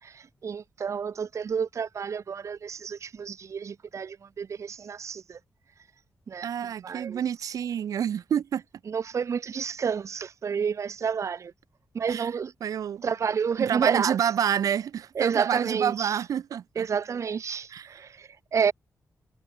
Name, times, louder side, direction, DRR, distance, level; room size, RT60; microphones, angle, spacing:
voice 1, 0.0-5.4 6.3-6.5 6.8-7.2 8.9-11.5 11.9-12.5 13.0-14.2 15.1-16.2 16.7-18.7, right 6 dB, 60° right, 1.4 m, -30 dB
voice 2, 6.4-8.6 12.1-12.3 12.6-13.0 13.6-16.9 17.7-18.0, right 9 dB, 80° right, 0.5 m, -28 dB
wide cardioid pair, 105°, 6 cm